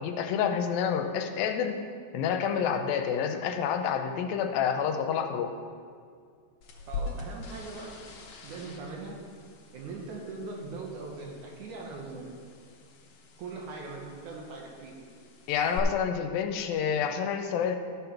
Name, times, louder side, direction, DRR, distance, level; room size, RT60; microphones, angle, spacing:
voice 1, 0.0-1.8 2.1-5.5 15.5-17.8, left 7 dB, 80° left, 6 dB, 2.4 m, -28 dB
sound 1, 6.6-15.8, left 4 dB, 65° left, 1.8 m, -44 dB
voice 2, 6.9-8.0 8.4-9.2 9.7-12.3 13.4-15.1, right 3 dB, 65° right, 0 dB, 2.3 m, -40 dB
13.0 x 5.5 x 5.8 m, 2.1 s
omnidirectional pair, 4.2 m